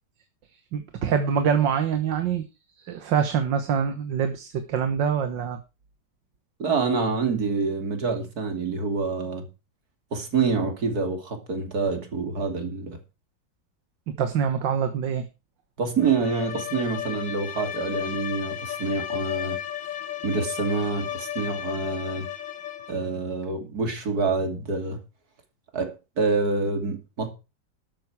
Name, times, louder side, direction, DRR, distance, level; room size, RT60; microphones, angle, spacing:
voice 1, 0.7-2.4 2.8-5.6 14.1-15.3, right 7 dB, 85° right, 1.9 m, -25 dB
voice 2, 6.6-9.5 10.1-13.0 15.8-19.6 20.2-22.3 22.9-25.0 25.7-27.3, right 4 dB, 55° right, 3.1 m, -27 dB
Bowed string instrument, 16.0-23.1, left 10 dB, 80° left, 1.9 m, -34 dB
13.0 x 9.3 x 4.8 m
omnidirectional pair, 1.9 m